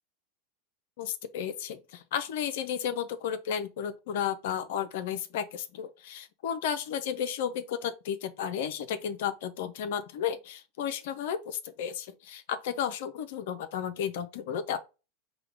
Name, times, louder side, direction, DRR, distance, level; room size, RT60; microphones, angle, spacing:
voice 1, 1.0-14.8, left 8 dB, 70° left, 0.5 m, -33 dB
4.8 x 2.2 x 4.6 m
hypercardioid pair, 95°, 0 cm